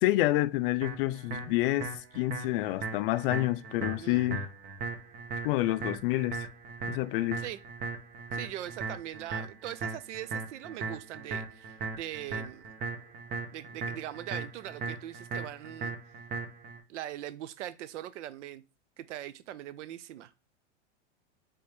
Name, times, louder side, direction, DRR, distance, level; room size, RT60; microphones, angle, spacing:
voice 1, 0.0-4.5 5.4-6.5 6.9-7.4, left 17 dB, 50° left, 0.4 m, -28 dB
sound 1, 0.8-16.8, right 4 dB, 25° right, 0.7 m, -38 dB
voice 2, 4.0-4.3 7.4-7.6 8.3-12.6 13.5-15.9 16.9-18.6 19.0-20.3, right 12 dB, 85° right, 0.5 m, -41 dB
4.2 x 3.6 x 3.3 m
supercardioid pair, 130°, 35 cm